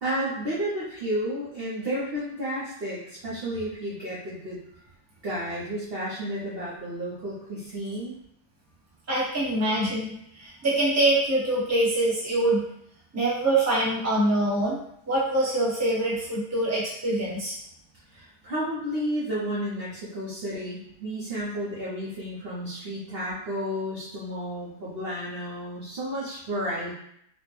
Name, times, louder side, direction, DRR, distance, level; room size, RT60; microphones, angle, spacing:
voice 1, 0.0-4.6 5.2-8.2 18.1-26.9, equal, 45° right, -8 dB, 0.8 m, -32 dB
voice 2, 9.1-12.6 13.1-14.8 15.1-17.5, right 1 dB, 10° right, -7 dB, 0.8 m, -24 dB
4.2 x 2.1 x 3.2 m, 0.72 s
omnidirectional pair, 1.8 m